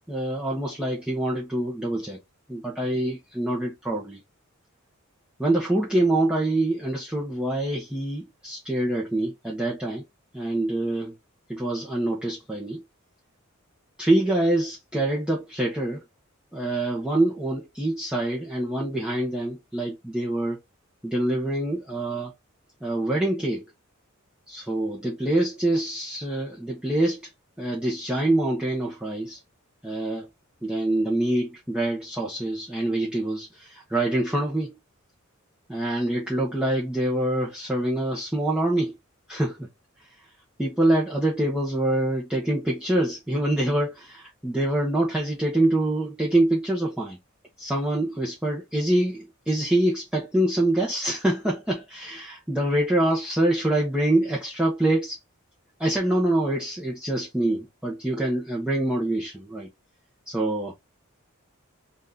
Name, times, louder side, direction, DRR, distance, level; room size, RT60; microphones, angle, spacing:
voice 1, 0.0-2.2 2.5-4.2 5.4-10.0 10.3-11.1 11.5-12.8 14.0-16.0 16.5-20.6 21.0-22.3 22.8-23.6 24.5-27.2 27.6-29.4 29.8-30.3 30.6-34.7 35.7-38.9 39.3-39.7 40.6-47.2 47.6-55.2 55.8-59.7 60.3-60.7, right 1 dB, 5° right, 1.1 m, -25 dB
4.2 x 2.7 x 3.7 m
head